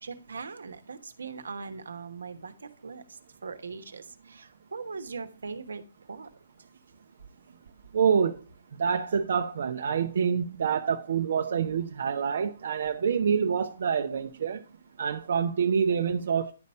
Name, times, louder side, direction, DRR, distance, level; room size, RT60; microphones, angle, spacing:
voice 1, 0.0-5.8 6.1-6.3, right 5 dB, 80° right, 1.1 m, -40 dB
voice 2, 7.9-8.4 8.7-14.6 15.0-16.5, right 7 dB, 60° right, 0.7 m, -26 dB
10.5 x 4.1 x 5.4 m
hypercardioid pair, 145°, 0 cm